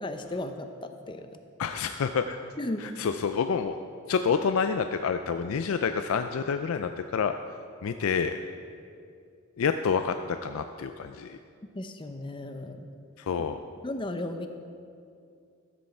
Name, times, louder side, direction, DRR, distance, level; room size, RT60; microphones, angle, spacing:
voice 1, 0.0-1.3 2.6-2.8 11.7-12.9 13.8-14.5, left 2 dB, 25° left, 7 dB, 0.6 m, -35 dB
voice 2, 1.6-2.4 2.8-3.8 4.1-7.3 7.8-8.4 9.6-11.4 13.2-13.6, left 6 dB, 80° left, 8 dB, 0.4 m, -28 dB
13.5 x 7.8 x 4.3 m, 2.4 s
head